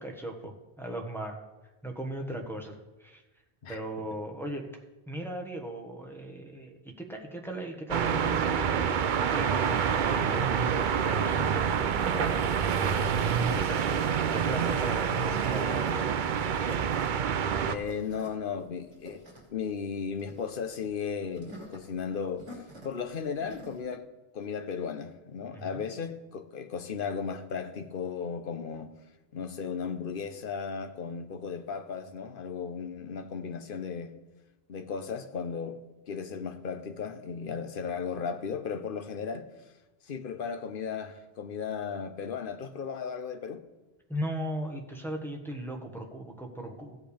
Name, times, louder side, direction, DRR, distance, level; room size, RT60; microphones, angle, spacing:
voice 1, 0.0-1.4 1.8-3.2 3.7-4.7 5.1-8.9 9.2-13.1 13.5-16.3 25.5-25.7 44.1-47.0, right 1 dB, ahead, 1.3 m, -38 dB
sound 1, 7.9-17.8, right 7 dB, 55° right, 0.6 m, -27 dB
sound 2, 15.4-23.8, equal, 40° right, 2.3 m, -49 dB
voice 2, 17.6-19.2 19.5-22.5 22.8-24.0 24.3-28.9 29.3-34.1 34.7-35.8 36.1-39.5 40.0-43.6, left 6 dB, 55° left, 0.9 m, -35 dB
16.0 x 7.8 x 3.4 m
omnidirectional pair, 1.2 m